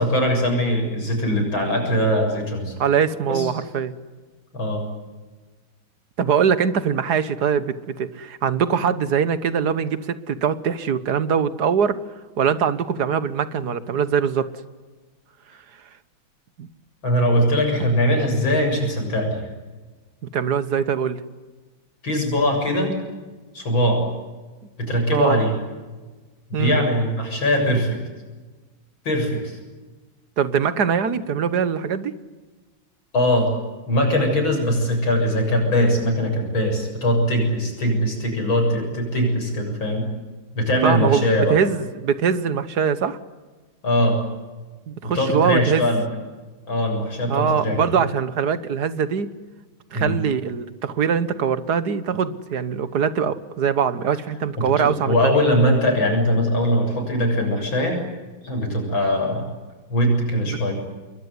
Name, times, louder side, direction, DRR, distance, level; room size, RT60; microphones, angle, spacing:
voice 1, 0.0-2.7 3.3-3.5 4.5-4.8 17.0-19.4 22.0-22.9 23.5-24.0 24.8-25.5 26.5-28.0 29.0-29.6 33.1-33.5 33.9-40.1 40.5-41.6 43.8-44.2 45.0-46.0 46.7-47.8 49.9-50.2 54.6-58.0 58.4-59.4 59.9-60.7, equal, 75° left, 3 dB, 8.1 m, -21 dB
voice 2, 2.8-3.9 6.2-12.0 12.4-14.5 16.6-16.7 17.8-17.9 20.3-21.2 25.1-25.4 26.5-26.8 30.4-32.1 40.8-43.2 44.9-45.8 47.2-49.3 49.9-55.4 60.5-60.6, right 7 dB, 55° right, 14 dB, 1.7 m, -22 dB
27.5 x 22.0 x 9.7 m, 1.3 s
omnidirectional pair, 2.2 m